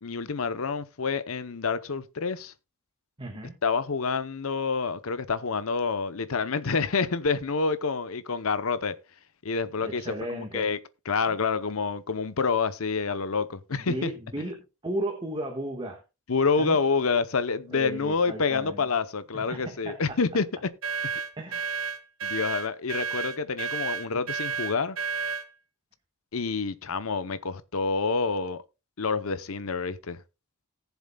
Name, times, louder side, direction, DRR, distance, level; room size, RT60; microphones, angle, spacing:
voice 1, 0.0-2.5 3.6-8.9 9.4-10.0 10.3-10.8 11.1-14.1 16.3-20.4 22.2-25.0 26.3-28.6 29.0-30.2, left 4 dB, 70° left, 0.8 m, -28 dB
voice 2, 3.2-3.5 9.8-10.7 11.3-11.4 13.7-16.0 16.6-16.8 17.7-18.8 19.3-20.2 21.4-21.7, right 1 dB, 20° right, 1.5 m, -35 dB
sound 1, 20.8-25.5, right 5 dB, 70° right, 1.5 m, -31 dB
19.0 x 7.1 x 2.3 m
head